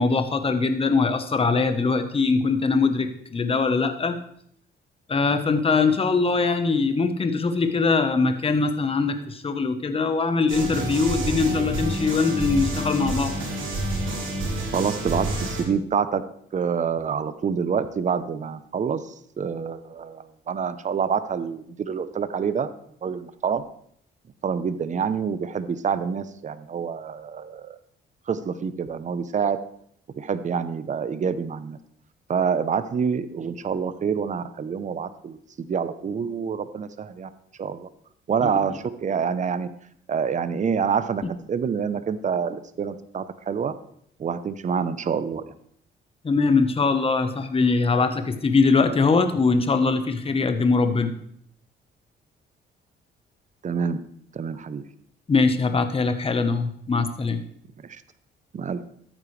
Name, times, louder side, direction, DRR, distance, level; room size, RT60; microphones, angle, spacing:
voice 1, 0.0-4.2 5.1-13.3 38.4-38.6 46.2-51.1 55.3-57.4, left 4 dB, 30° left, 8 dB, 1.1 m, -22 dB
sound 1, 10.5-15.6, right 1 dB, 75° right, 4.0 m, -28 dB
voice 2, 14.7-16.2 16.5-19.0 19.4-22.7 23.0-23.6 24.4-27.8 28.3-29.6 30.2-31.8 32.3-37.3 37.6-37.9 38.3-39.7 40.1-41.2 41.5-43.7 44.2-45.4 53.6-54.0 54.3-54.8 57.9-58.0 58.5-58.8, right 6 dB, 40° right, 13 dB, 0.7 m, -27 dB
13.5 x 9.0 x 3.3 m, 0.67 s
cardioid pair, 90°, 20 cm